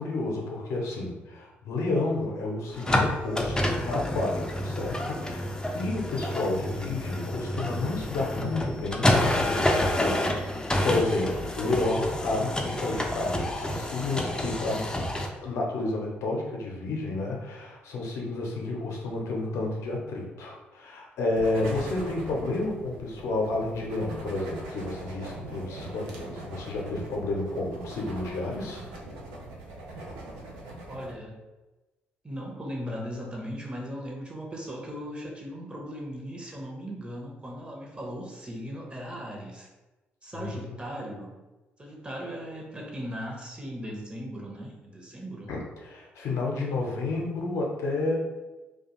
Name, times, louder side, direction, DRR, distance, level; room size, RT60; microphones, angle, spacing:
voice 1, 0.0-5.5 5.7-14.8 15.4-28.8 40.3-40.5 45.5-48.2, left 2 dB, 65° left, -1 dB, 0.6 m, -31 dB
sound 1, 2.7-15.3, left 1 dB, 15° left, 0.4 m, -28 dB
sound 2, 21.4-31.1, right 2 dB, 75° right, 0.4 m, -41 dB
voice 2, 30.9-31.4 32.2-39.7 40.2-41.3 41.8-45.5, equal, 20° right, -1 dB, 0.7 m, -38 dB
2.3 x 2.2 x 2.9 m, 1.1 s
hypercardioid pair, 45°, 5 cm